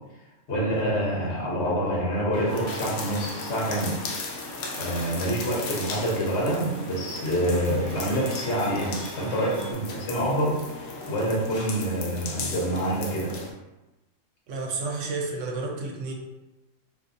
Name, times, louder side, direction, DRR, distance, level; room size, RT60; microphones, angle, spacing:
voice 1, 0.5-4.0 4.7-13.3, right 1 dB, 60° left, -4 dB, 1.2 m, -27 dB
sound 1, 2.3-9.7, equal, 20° left, 0.8 m, -41 dB
sound 2, 2.5-13.5, left 3 dB, 75° left, 0.9 m, -37 dB
voice 2, 14.5-16.1, right 3 dB, 70° right, 0 dB, 1.0 m, -31 dB
3.7 x 2.7 x 2.6 m, 1.0 s
omnidirectional pair, 1.3 m